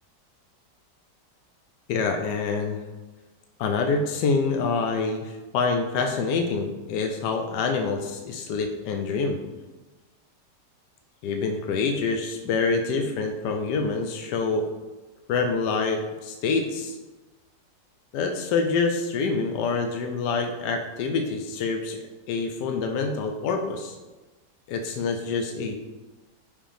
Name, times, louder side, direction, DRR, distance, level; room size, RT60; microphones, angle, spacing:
voice 1, 1.9-2.8 3.6-9.4 11.2-14.7 15.3-17.0 18.1-22.0 22.3-24.0 24.7-25.8, left 4 dB, 80° left, 5 dB, 1.2 m, -26 dB
5.4 x 5.2 x 5.0 m, 1.2 s
omnidirectional pair, 1.8 m